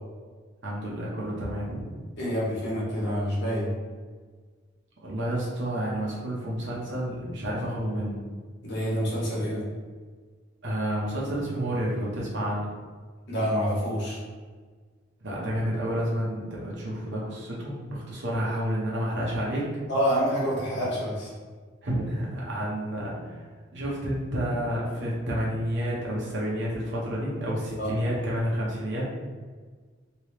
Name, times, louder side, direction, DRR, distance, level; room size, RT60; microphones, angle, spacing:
voice 1, 0.6-1.8 5.0-8.2 10.6-12.7 15.2-19.6 21.8-23.4 23.7-29.1, equal, 65° right, -5 dB, 0.9 m, -30 dB
voice 2, 2.2-3.7 8.6-9.6 13.3-14.2 19.9-21.3 27.8-27.9, equal, 60° left, -6 dB, 1.3 m, -27 dB
3.2 x 3.0 x 3.0 m, 1.5 s
head